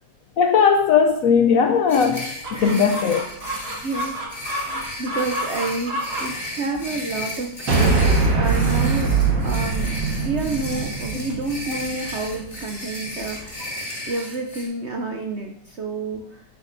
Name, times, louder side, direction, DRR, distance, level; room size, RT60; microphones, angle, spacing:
voice 1, 0.4-3.2, left 6 dB, 70° left, 0.8 m, -18 dB
sound 1, 1.9-14.6, left 1 dB, 30° left, 3.6 m, -34 dB
Chicken rooster, 2.4-13.5, right 1 dB, 35° right, 1.8 m, -34 dB
voice 2, 2.5-2.9 3.8-4.7 5.0-9.2 9.4-13.7 14.1-16.4, right 3 dB, 60° right, 0.7 m, -29 dB
sound 2, 7.7-12.1, right 4 dB, 75° right, 2.1 m, -21 dB
11.0 x 9.2 x 2.6 m
omnidirectional pair, 1.9 m